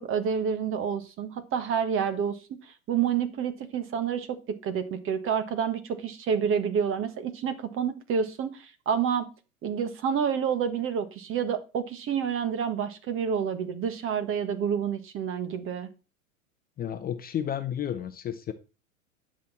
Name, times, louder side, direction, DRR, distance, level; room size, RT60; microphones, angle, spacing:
voice 1, 0.0-9.3 9.6-15.9, right 7 dB, 30° right, 1.5 m, -29 dB
voice 2, 16.8-18.5, left 9 dB, 25° left, 0.8 m, -32 dB
10.5 x 6.2 x 4.2 m
hypercardioid pair, 100°, 39 cm